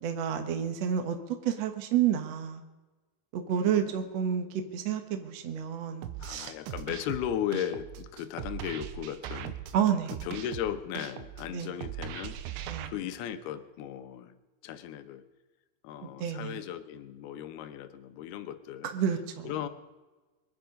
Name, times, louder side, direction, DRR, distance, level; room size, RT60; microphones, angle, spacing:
voice 1, 0.0-1.2 1.4-2.6 3.3-4.5 4.7-6.5 9.7-10.1 11.5-11.7 12.7-12.9 16.2-16.5 18.9-19.5, right 9 dB, 65° right, 6 dB, 1.6 m, -29 dB
voice 2, 3.5-4.0 6.2-9.5 10.2-12.4 12.8-14.4 14.6-15.2 15.8-18.9 19.4-19.7, left 10 dB, 75° left, 9 dB, 2.7 m, -36 dB
sound 1, 6.0-12.9, right 11 dB, 90° right, 3.2 m, -40 dB
24.0 x 10.5 x 5.2 m, 1.2 s
omnidirectional pair, 5.1 m